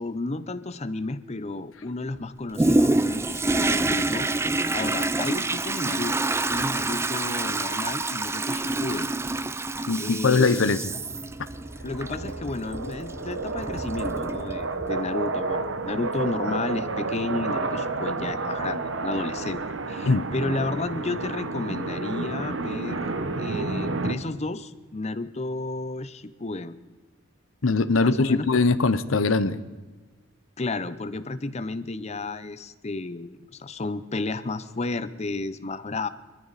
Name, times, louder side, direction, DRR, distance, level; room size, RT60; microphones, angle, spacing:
voice 1, 0.0-4.3 4.7-6.2 6.5-9.1 10.0-10.7 11.8-26.8 28.0-28.5 30.6-36.1, left 2 dB, 35° left, 0.7 m, -32 dB
Toilet flush, 2.5-15.0 15.5-15.6, right 2 dB, 15° right, 0.4 m, -27 dB
voice 2, 9.9-10.9 20.1-20.3 27.6-29.6, left 4 dB, 90° left, 0.8 m, -21 dB
sound 1, 11.5-24.1, right 3 dB, 70° right, 1.1 m, -30 dB
22.0 x 13.5 x 4.1 m
head